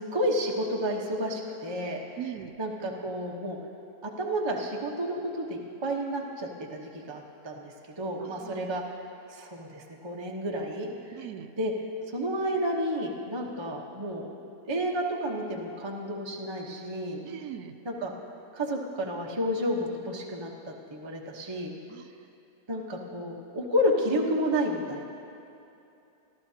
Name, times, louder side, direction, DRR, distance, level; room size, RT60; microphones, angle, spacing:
voice 1, 0.0-2.0 2.6-3.6 4.0-8.8 9.3-11.2 11.6-11.7 12.1-14.3 14.7-17.2 17.8-18.1 18.5-21.7 22.7-25.0, equal, 20° right, -1 dB, 0.9 m, -31 dB
voice 2, 2.2-2.5 8.4-8.8 11.1-11.5 17.2-17.8 21.9-22.1, right 10 dB, 75° right, 8 dB, 1.0 m, -40 dB
24.0 x 13.5 x 2.8 m, 2.8 s
omnidirectional pair, 1.7 m